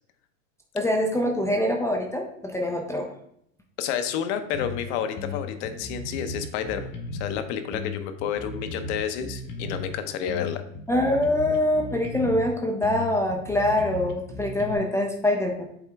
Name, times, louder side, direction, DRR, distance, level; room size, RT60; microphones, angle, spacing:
voice 1, 0.7-3.1 10.9-15.7, left 1 dB, 5° left, 1 dB, 0.4 m, -24 dB
voice 2, 3.8-10.6, left 8 dB, 60° left, 9 dB, 0.9 m, -30 dB
sound 1, 4.5-4.8 5.2-7.4 7.7-9.9 10.3-12.5 12.8-14.7, left 2 dB, 25° left, 0.8 m, -35 dB
8.0 x 3.6 x 3.5 m, 0.72 s
supercardioid pair, 130°, 39 cm